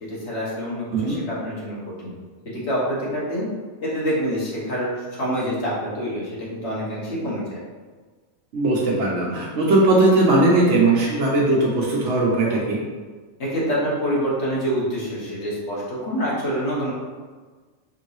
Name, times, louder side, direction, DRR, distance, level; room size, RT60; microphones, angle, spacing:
voice 1, 0.1-2.1 2.7-3.5 3.8-7.6 13.4-16.9, equal, 70° left, -7 dB, 1.5 m, -26 dB
voice 2, 8.5-12.8, right 2 dB, 90° right, -4 dB, 1.0 m, -19 dB
5.2 x 3.1 x 2.7 m, 1.4 s
omnidirectional pair, 1.2 m